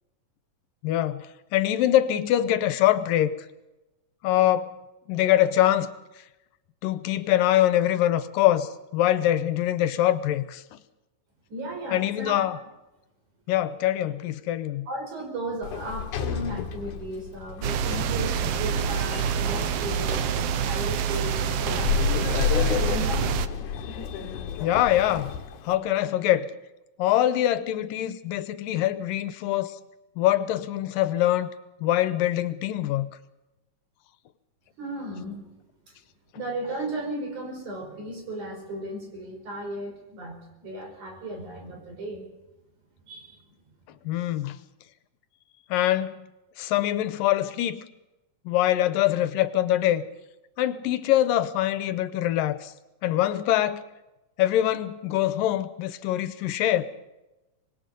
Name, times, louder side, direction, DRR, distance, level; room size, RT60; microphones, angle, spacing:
voice 1, 0.8-1.3 1.5-3.3 4.2-4.7 5.1-5.9 6.8-10.6 11.9-12.6 13.5-14.9 24.6-25.4 25.6-26.5 27.0-29.8 30.2-31.5 31.8-33.1 44.1-44.6 45.7-46.3 46.6-47.8 48.5-50.1 50.6-52.7 53.0-53.8 54.4-56.9, left 13 dB, 85° left, 2.6 m, -24 dB
voice 2, 11.5-12.5 14.9-20.2 20.6-22.4 22.8-23.4 34.8-35.6 36.3-42.3 43.0-43.4 44.2-44.3, right 1 dB, 60° right, 6.1 m, -35 dB
Sliding door, 15.6-25.8, left 7 dB, 70° left, 2.6 m, -31 dB
sound 1, 17.6-23.5, right 9 dB, 80° right, 1.3 m, -27 dB
25.0 x 20.5 x 5.3 m
omnidirectional pair, 3.9 m